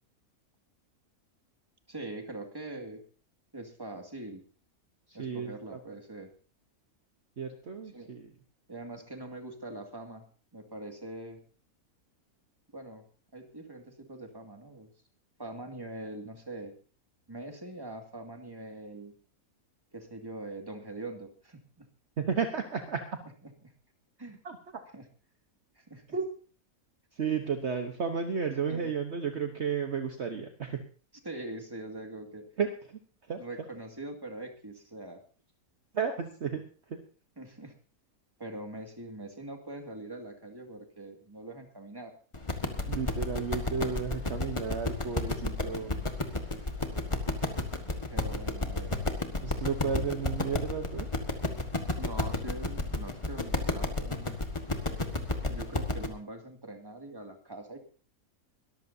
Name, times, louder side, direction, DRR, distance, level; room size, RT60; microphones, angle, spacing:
voice 1, 1.9-3.0 3.5-4.4 5.1-6.3 7.9-8.1 8.7-10.2 10.5-11.4 12.7-13.0 13.3-14.9 15.4-16.7 17.3-19.1 19.9-21.9 23.6-23.7 24.2-24.4 24.9-25.0 25.8-26.0 28.7-28.9 31.2-32.5 33.4-35.2 37.4-37.7 38.4-42.1 46.2-46.7 48.1-49.0 52.0-54.4 55.4-57.8, right 2 dB, 15° right, 4 dB, 2.2 m, -43 dB
voice 2, 5.1-5.8 7.4-8.3 22.2-23.0 24.4-24.8 26.1-26.3 27.1-30.8 32.6-33.4 35.9-37.0 42.9-46.0 49.4-51.1, right 6 dB, 50° right, 5 dB, 1.3 m, -33 dB
sound 1, 42.3-56.1, left 2 dB, 20° left, 1.6 m, -31 dB
22.0 x 14.0 x 2.8 m, 0.39 s
omnidirectional pair, 1.5 m